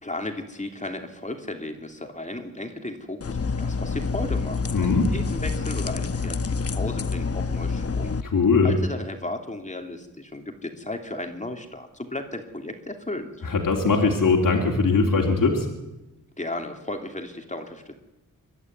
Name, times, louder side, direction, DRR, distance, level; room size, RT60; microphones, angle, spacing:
voice 1, 0.0-8.1 8.6-13.3 16.4-18.0, left 2 dB, 20° left, 5 dB, 2.8 m, -35 dB
sound 1, 3.2-8.2, left 4 dB, 40° left, 1.0 m, -27 dB
voice 2, 4.7-5.1 8.2-8.7 13.4-15.7, left 4 dB, 65° left, -1 dB, 3.1 m, -20 dB
23.0 x 12.5 x 9.5 m, 1.0 s
cardioid pair, 70°, 35 cm